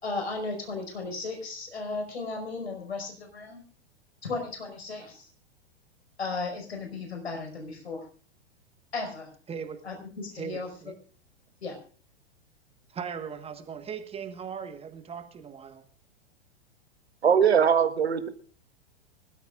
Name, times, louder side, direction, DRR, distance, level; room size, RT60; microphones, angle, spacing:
voice 1, 0.0-3.6 4.2-5.3 6.2-8.0 8.9-9.3 9.8-10.9 11.6-11.8, left 3 dB, 75° left, 3 dB, 5.2 m, -35 dB
voice 2, 9.5-9.8 10.4-10.9 12.9-15.8, right 6 dB, 20° right, 8 dB, 1.5 m, -38 dB
voice 3, 17.2-18.3, right 7 dB, 75° right, 9 dB, 1.6 m, -21 dB
24.5 x 13.0 x 2.5 m, 0.40 s
figure-of-eight pair, 100°, 32 cm